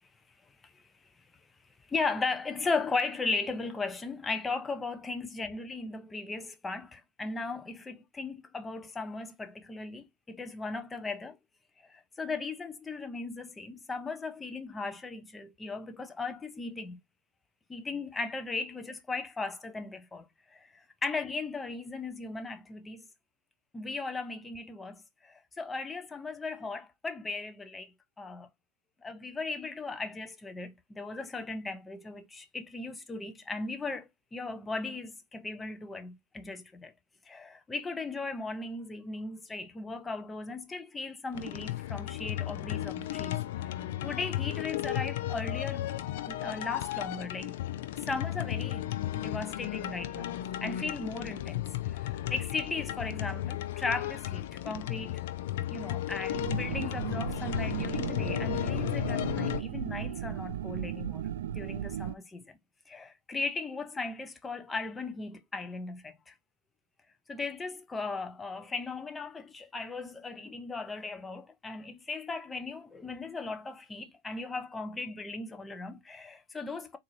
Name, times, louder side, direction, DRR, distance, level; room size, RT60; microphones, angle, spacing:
voice 1, 1.9-11.4 11.8-17.0 17.7-23.1 23.7-27.9 28.2-28.5 29.0-36.9 37.3-45.9 46.3-47.5 48.0-48.9 49.1-55.2 55.7-61.3 61.5-62.6 62.9-66.3 67.3-77.0, left 3 dB, 15° left, 0.7 m, -37 dB
sound 1, 41.3-59.6, left 14 dB, 65° left, 0.4 m, -34 dB
sound 2, 56.3-62.1, right 10 dB, 75° right, 0.3 m, -36 dB
3.7 x 2.7 x 3.1 m
hypercardioid pair, 100°, 0 cm